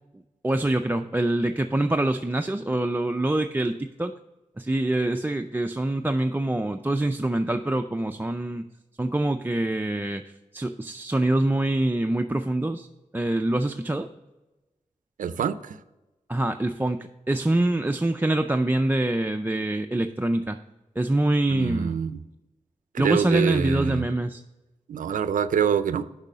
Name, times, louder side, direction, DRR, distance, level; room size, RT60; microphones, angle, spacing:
voice 1, 0.4-4.1 4.6-8.6 9.0-12.9 13.1-14.1 16.3-20.6 21.0-22.0 23.0-24.4, right 1 dB, 15° right, 5 dB, 0.4 m, -25 dB
voice 2, 15.2-15.8 21.5-22.2 22.9-24.1 24.9-26.1, right 7 dB, 85° right, 14 dB, 0.4 m, -25 dB
6.6 x 5.5 x 6.1 m, 1.0 s
cardioid pair, 45°, 13 cm